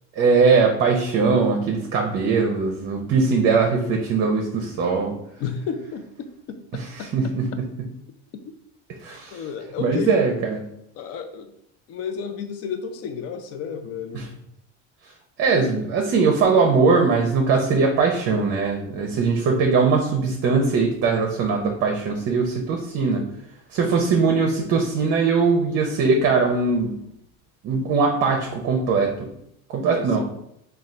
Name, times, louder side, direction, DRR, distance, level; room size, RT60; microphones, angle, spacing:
voice 1, 0.2-5.1 6.7-6.8 7.1-7.5 9.0-9.4 9.8-10.6 14.1-14.2 15.4-23.2 23.7-26.9 27.6-29.3 29.7-30.2, right 4 dB, 40° right, 1 dB, 0.6 m, -20 dB
voice 2, 5.4-7.6 8.3-8.5 9.3-10.3 10.9-11.5 11.9-14.4 29.9-30.2, left 6 dB, 50° left, 8 dB, 0.6 m, -32 dB
3.7 x 2.3 x 4.3 m, 0.76 s
cardioid pair, 140°, 31 cm